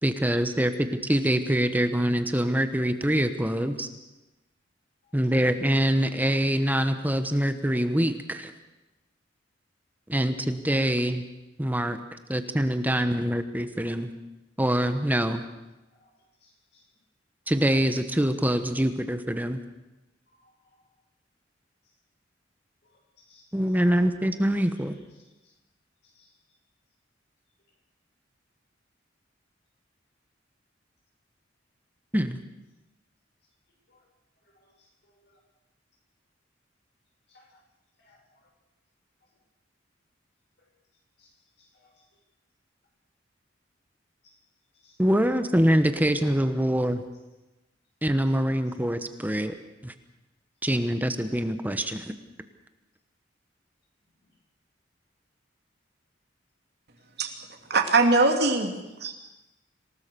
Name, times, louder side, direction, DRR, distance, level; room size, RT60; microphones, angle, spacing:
voice 1, 0.0-3.9 5.1-8.5 10.1-11.2 11.6-12.0 12.3-14.1 14.6-15.4 17.5-19.6 23.5-25.0 32.1-32.4 45.0-47.0 48.0-49.5 49.8-49.9 50.6-52.1, equal, 10° right, 8 dB, 1.1 m, -24 dB
voice 2, 16.4-16.9 20.3-20.5 22.8-23.5 25.4-25.5 26.1-26.3 33.9-34.0 34.4-34.9 35.2-35.4 37.3-37.6 38.0-38.5 41.2-41.3 41.6-41.9 44.2-44.4 44.8-45.0 57.0-57.1 59.0-59.2, left 3 dB, 60° left, 0 dB, 7.6 m, -62 dB
voice 3, 57.7-58.7 59.0-59.2, right 3 dB, 60° right, 3 dB, 2.7 m, -21 dB
27.0 x 18.0 x 7.0 m, 1.0 s
head